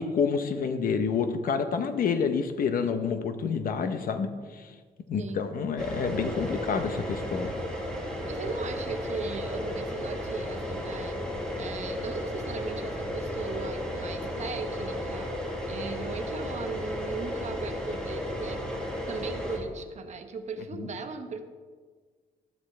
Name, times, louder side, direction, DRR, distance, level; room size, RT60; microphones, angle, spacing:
voice 1, 0.0-4.7 5.1-7.5 20.8-20.9, left 6 dB, 65° left, 9 dB, 0.9 m, -28 dB
sound 1, 5.8-19.6, left 1 dB, 5° left, 2.4 m, -34 dB
voice 2, 8.3-11.2 11.6-15.4 15.7-18.6 19.1-21.4, right 4 dB, 45° right, 6 dB, 1.1 m, -37 dB
12.5 x 11.5 x 3.3 m, 1.5 s
cardioid pair, 120°, 16 cm